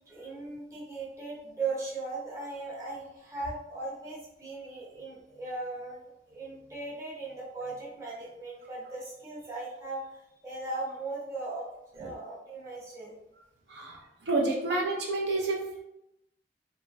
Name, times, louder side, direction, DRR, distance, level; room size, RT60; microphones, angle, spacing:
voice 1, 0.1-6.0 6.3-11.7 11.9-13.1, right 3 dB, 15° right, -7 dB, 0.8 m, -38 dB
voice 2, 13.7-15.8, right 2 dB, 65° right, -2 dB, 0.5 m, -29 dB
3.0 x 2.1 x 2.6 m, 0.88 s
head